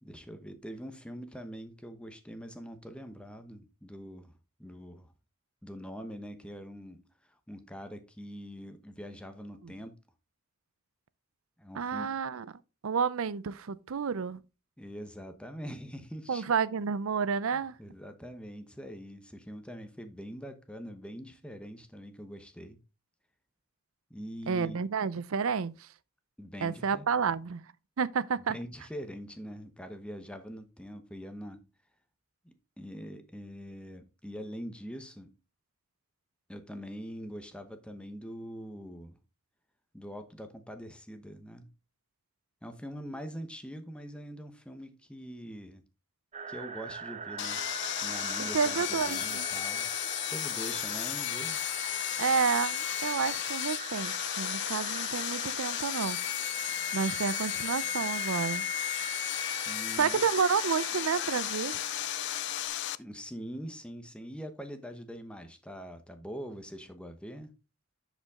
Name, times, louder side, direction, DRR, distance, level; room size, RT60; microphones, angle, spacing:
voice 1, 0.0-5.1 5.6-7.0 7.3-9.9 11.6-12.1 14.8-16.5 17.5-22.8 24.1-24.8 26.4-27.2 28.5-31.6 32.4-35.3 36.5-39.2 39.9-41.7 42.6-45.8 46.5-47.7 48.0-49.9 50.3-51.6 59.6-60.2 63.0-67.5, equal, 5° left, 0.9 m, -43 dB
voice 2, 11.8-12.5 12.8-14.4 16.3-17.8 24.5-25.9 26.6-27.6 28.0-28.6 48.4-49.5 52.2-56.2 56.9-58.6 60.0-61.8, right 6 dB, 70° right, 0.5 m, -30 dB
sound 1, 46.3-62.7, right 5 dB, 30° right, 0.7 m, -42 dB
Sawing, 47.4-63.0, left 14 dB, 55° left, 0.4 m, -34 dB
10.5 x 5.2 x 3.6 m
head